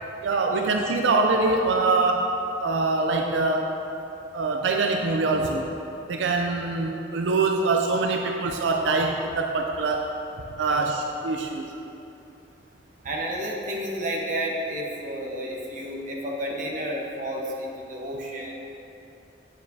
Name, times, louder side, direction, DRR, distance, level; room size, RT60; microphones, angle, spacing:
voice 1, 0.2-2.3 2.6-3.8 4.3-5.7 6.1-10.1 10.6-11.7, right 3 dB, 85° right, 3 dB, 0.4 m, -24 dB
voice 2, 13.0-18.5, equal, 45° right, -2 dB, 1.0 m, -31 dB
9.4 x 7.1 x 2.7 m, 2.9 s
head